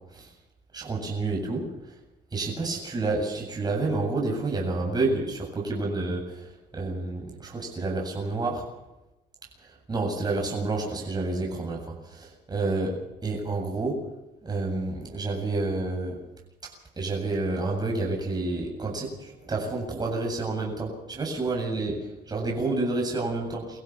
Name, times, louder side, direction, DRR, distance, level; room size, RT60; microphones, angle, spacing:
voice 1, 0.7-1.7 2.3-6.5 6.7-8.7 9.9-12.9 13.2-14.0 14.4-16.2 16.6-23.6, right 3 dB, 25° right, 0 dB, 8.0 m, -29 dB
25.5 x 15.5 x 7.2 m, 0.98 s
cardioid pair, 110°, 17 cm